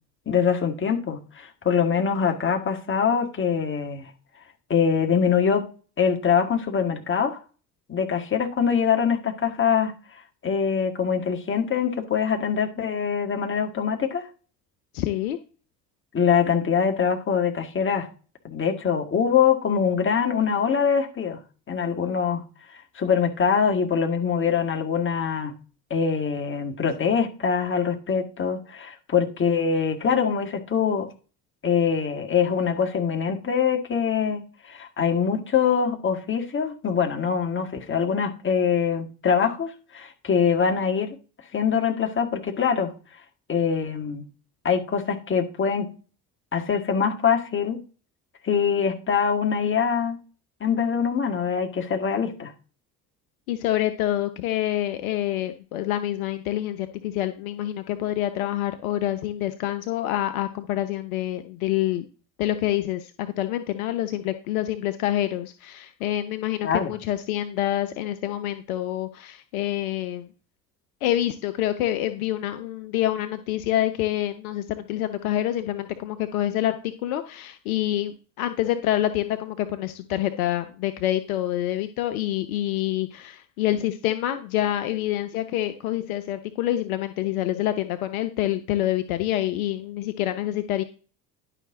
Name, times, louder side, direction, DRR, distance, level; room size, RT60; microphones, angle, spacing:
voice 1, 0.3-4.1 4.7-5.6 6.0-7.4 7.9-14.3 16.1-18.1 18.4-21.4 21.7-22.4 22.7-25.5 25.9-31.1 31.6-41.1 41.5-42.9 43.5-44.2 44.6-45.9 46.5-47.8 48.4-50.2 50.6-52.5 66.6-66.9, left 6 dB, 25° left, 4 dB, 1.9 m, -24 dB
voice 2, 14.9-15.4 53.5-62.0 62.4-70.3 71.0-90.8, left 13 dB, 60° left, 9 dB, 0.9 m, -27 dB
11.0 x 5.8 x 3.8 m, 0.36 s
figure-of-eight pair, 60°, 48 cm